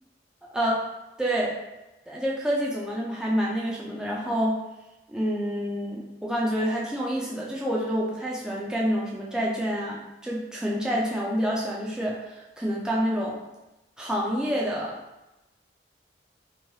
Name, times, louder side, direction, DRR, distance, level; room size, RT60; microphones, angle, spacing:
voice 1, 1.2-1.5 2.1-4.6 5.1-13.4 14.0-15.0, equal, 5° right, -5 dB, 0.3 m, -28 dB
3.0 x 2.2 x 2.7 m, 0.99 s
head